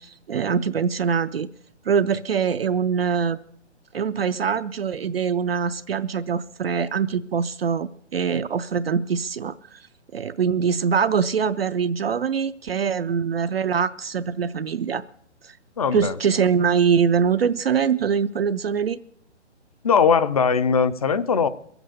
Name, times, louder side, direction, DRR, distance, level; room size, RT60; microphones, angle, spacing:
voice 1, 0.0-1.5 1.8-3.4 3.9-9.9 10.1-15.0 15.4-15.6 15.9-19.0, right 6 dB, 55° right, 0.5 m, -23 dB
voice 2, 15.8-16.2 19.8-21.5, left 6 dB, 35° left, 0.5 m, -20 dB
22.0 x 8.0 x 6.6 m
figure-of-eight pair, 135°, 35 cm